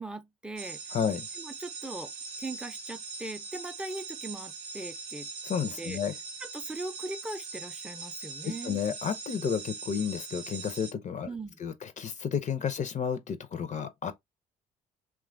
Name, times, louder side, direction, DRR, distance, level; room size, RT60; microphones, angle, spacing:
voice 1, 0.0-0.8 1.4-2.1 2.4-5.3 5.8-6.0 6.4-8.8 11.3-11.6, right 2 dB, 5° right, 0.5 m, -40 dB
sound 1, 0.6-10.9, right 4 dB, 85° right, 0.6 m, -41 dB
voice 2, 0.9-1.3 5.4-6.1 8.4-11.3 11.6-14.1, left 7 dB, 40° left, 0.5 m, -31 dB
3.0 x 2.2 x 2.5 m
hypercardioid pair, 50°, 19 cm